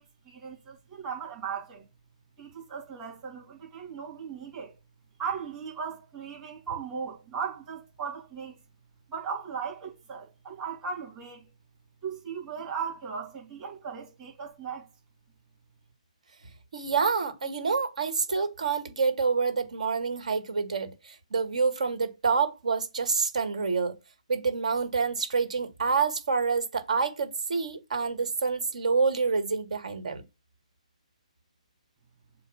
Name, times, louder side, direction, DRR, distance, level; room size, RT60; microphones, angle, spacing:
voice 1, 0.3-1.8 2.4-4.7 5.2-8.6 9.1-11.5 12.0-14.9, right 6 dB, 15° right, 3.1 m, -37 dB
voice 2, 16.7-24.0 24.3-30.2, right 5 dB, 65° right, 1.9 m, -27 dB
7.5 x 2.6 x 5.6 m
hypercardioid pair, 165°, 4 cm